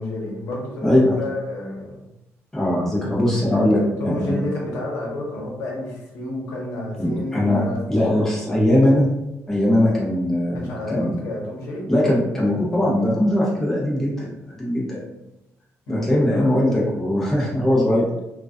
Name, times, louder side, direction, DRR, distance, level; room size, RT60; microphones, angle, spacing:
voice 1, 0.0-2.0 3.5-8.2 10.5-11.9 15.9-16.3, left 1 dB, 70° left, -2 dB, 0.8 m, -30 dB
voice 2, 0.8-1.2 2.5-4.4 7.0-9.1 9.5-10.6 10.9-11.2 11.9-14.3 14.6-15.0 15.9-18.1, left 1 dB, 5° left, -6 dB, 0.6 m, -20 dB
2.3 x 2.2 x 2.4 m, 0.90 s
cardioid pair, 170°, 5 cm